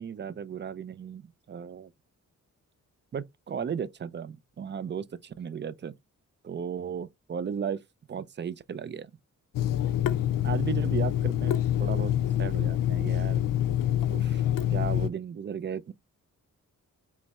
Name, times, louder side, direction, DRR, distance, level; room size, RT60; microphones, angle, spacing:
voice 1, 0.0-1.9 3.1-5.9 6.4-7.8 8.1-9.1 10.4-13.4 14.1-14.4 14.7-15.9, right 7 dB, 35° right, 0.4 m, -35 dB
Water tap faucet / Sink (filling or washing), 9.5-15.1, left 11 dB, 85° left, 0.5 m, -26 dB
4.1 x 3.1 x 3.4 m
wide cardioid pair, 110°, 32 cm